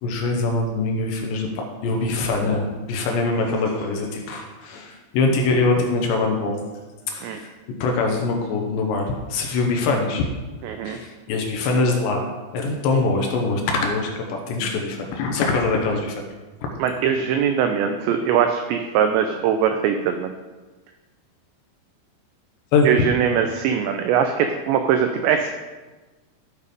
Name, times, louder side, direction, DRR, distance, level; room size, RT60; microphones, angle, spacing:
voice 1, 0.0-6.6 7.1-7.5 7.8-10.3 10.8-12.3 12.5-16.2 16.7-16.8 22.7-22.9, left 3 dB, 70° left, 2 dB, 3.0 m, -23 dB
voice 2, 10.6-11.0 16.8-20.3 22.8-25.5, right 8 dB, 90° right, 6 dB, 2.5 m, -21 dB
13.0 x 7.2 x 5.2 m, 1.2 s
omnidirectional pair, 5.9 m